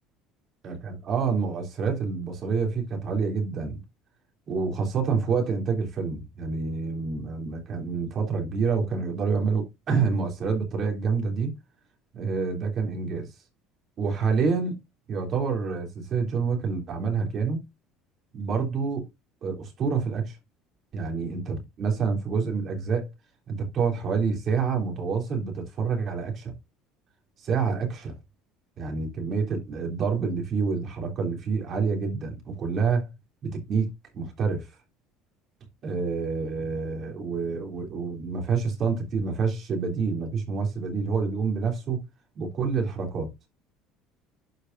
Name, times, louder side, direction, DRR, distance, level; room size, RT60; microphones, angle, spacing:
voice 1, 0.6-3.8 4.5-11.5 12.1-13.3 14.0-14.8 15.1-17.6 18.3-19.0 19.4-20.4 20.9-23.1 23.5-26.5 27.4-28.1 28.8-33.1 33.4-34.7 35.8-42.0 42.3-43.3, right 5 dB, 40° right, 3.2 m, -27 dB
11.5 x 5.1 x 2.7 m
cardioid pair, 135°, 0 cm